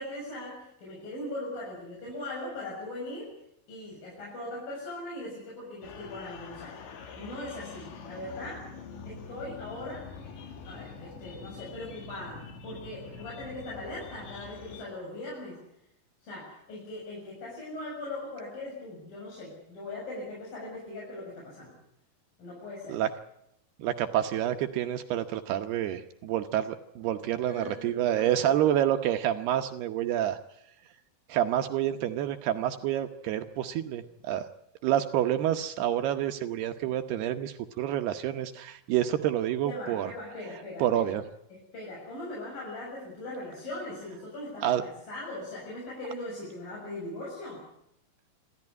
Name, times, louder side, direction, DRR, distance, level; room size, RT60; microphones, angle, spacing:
voice 1, 0.0-3.3 3.7-6.8 7.1-8.7 9.0-10.1 10.7-15.6 16.2-21.7 22.4-23.0 27.2-28.5 39.6-41.1 41.5-47.6, left 1 dB, 45° left, -4 dB, 8.6 m, -40 dB
sound 1, 5.8-14.8, left 5 dB, 65° left, 4.6 m, -45 dB
voice 2, 23.8-30.4 31.3-34.5 34.8-40.1 40.8-41.2 44.6-44.8, right 11 dB, 75° right, 7 dB, 2.5 m, -28 dB
26.5 x 14.5 x 9.7 m, 0.79 s
omnidirectional pair, 5.7 m